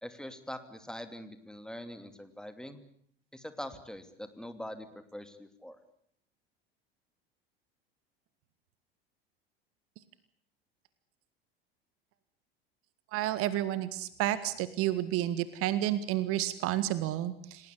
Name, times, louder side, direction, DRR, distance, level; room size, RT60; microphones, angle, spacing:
voice 1, 0.0-2.8 3.3-4.9 5.1-5.8, left 1 dB, ahead, 9 dB, 2.8 m, -43 dB
voice 2, 13.1-17.7, right 13 dB, 45° right, 15 dB, 1.7 m, -31 dB
29.0 x 19.0 x 8.5 m, 0.66 s
figure-of-eight pair, 70°, 30 cm